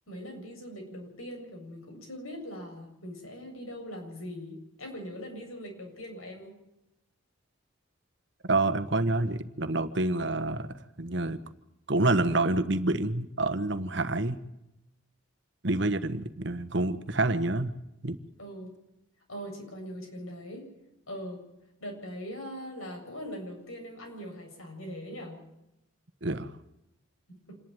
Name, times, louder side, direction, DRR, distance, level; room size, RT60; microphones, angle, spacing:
voice 1, 0.1-6.6 14.0-14.1 18.4-18.7 19.3-20.7 21.1-21.4 21.8-25.4 27.3-27.6, equal, 85° left, 1 dB, 7.8 m, -41 dB
voice 2, 8.4-10.7 11.0-11.4 11.9-14.4 15.6-17.7 18.0-18.2 26.2-26.5, right 2 dB, 60° right, 10 dB, 1.3 m, -27 dB
27.5 x 11.5 x 9.0 m, 0.88 s
head